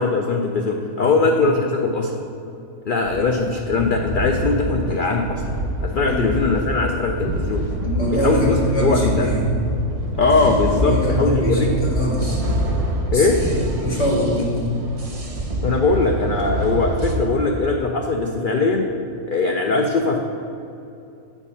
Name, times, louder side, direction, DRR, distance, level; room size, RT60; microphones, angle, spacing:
voice 1, 0.0-2.2 2.9-5.4 5.8-7.7 8.1-9.3 10.2-11.8 13.1-13.4 15.6-18.9 19.3-20.2, left 3 dB, 85° left, 2 dB, 0.4 m, -20 dB
sound 1, 3.0-17.1, right 1 dB, 35° right, 0.5 m, -26 dB
voice 2, 7.8-9.5 10.4-12.4 13.1-14.6, equal, 50° left, -6 dB, 2.1 m, -23 dB
8.0 x 4.6 x 5.5 m, 2.7 s
omnidirectional pair, 1.5 m